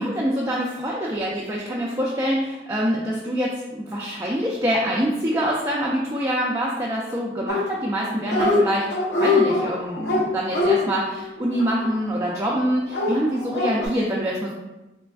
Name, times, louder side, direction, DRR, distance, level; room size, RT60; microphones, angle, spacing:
voice 1, 0.0-14.5, equal, 15° right, -4 dB, 0.3 m, -25 dB
Dog, 7.5-8.0 8.2-8.6 8.9-12.3 12.9-13.9, left 2 dB, 65° left, 0.7 m, -23 dB
3.3 x 3.2 x 2.3 m, 1.0 s
head